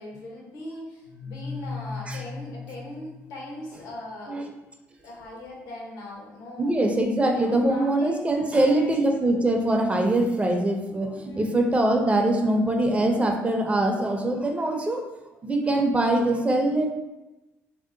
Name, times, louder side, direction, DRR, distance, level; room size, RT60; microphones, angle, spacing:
voice 1, 0.0-4.3 5.0-6.7 7.3-9.0 11.2-11.7, left 1 dB, 75° left, -2 dB, 0.9 m, -40 dB
sound 1, 1.0-3.9, left 4 dB, 80° right, 0.7 m, -37 dB
voice 2, 6.6-15.0 15.4-16.9, right 1 dB, 20° right, 3 dB, 0.6 m, -23 dB
2.8 x 2.0 x 3.7 m, 1.0 s
supercardioid pair, 65°, 6 cm